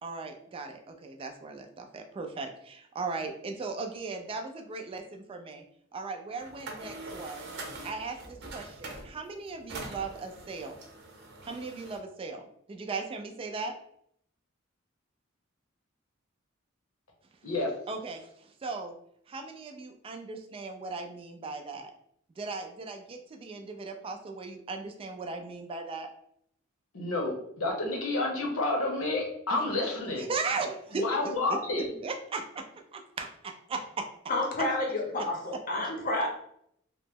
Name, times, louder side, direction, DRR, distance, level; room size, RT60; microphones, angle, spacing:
voice 1, 0.0-5.6 5.9-7.5 7.8-10.8 11.4-13.7 17.9-19.0 19.3-21.9 22.4-26.1 29.5-29.6 30.2-31.3 32.0-34.1 35.2-35.3, right 4 dB, 25° right, 4 dB, 0.3 m, -37 dB
sound 1, 6.4-9.2 9.5-12.0, right 2 dB, 60° right, 0.7 m, -43 dB
voice 2, 26.9-30.2 30.9-31.9, left 2 dB, 85° left, 0 dB, 0.8 m, -30 dB
voice 3, 34.3-36.3, left 2 dB, 45° left, 1 dB, 0.7 m, -29 dB
2.9 x 2.0 x 3.4 m, 0.70 s
head